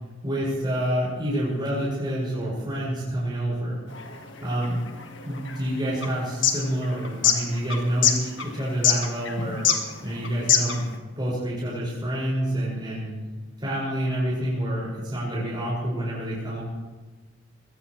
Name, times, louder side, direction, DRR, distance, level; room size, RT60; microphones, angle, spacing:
voice 1, 0.2-3.9 4.4-4.8 5.2-9.7 10.0-10.8 11.2-13.1 13.6-16.6, right 1 dB, 20° right, -8 dB, 6.1 m, -28 dB
sound 1, 3.9-11.0, left 8 dB, 65° left, 1.7 m, -25 dB
21.5 x 17.0 x 3.3 m, 1.3 s
head